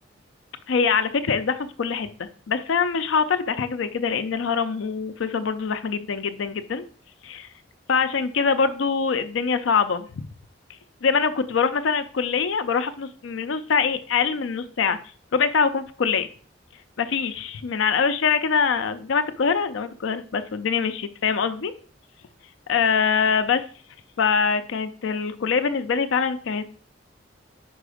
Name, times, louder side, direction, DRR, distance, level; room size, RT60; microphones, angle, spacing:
voice 1, 0.7-6.8 7.2-7.5 7.9-10.3 11.0-15.0 15.3-16.3 17.0-21.7 22.7-23.6 24.2-26.6, left 5 dB, 80° left, 10 dB, 0.5 m, -24 dB
5.0 x 4.7 x 4.9 m, 0.43 s
head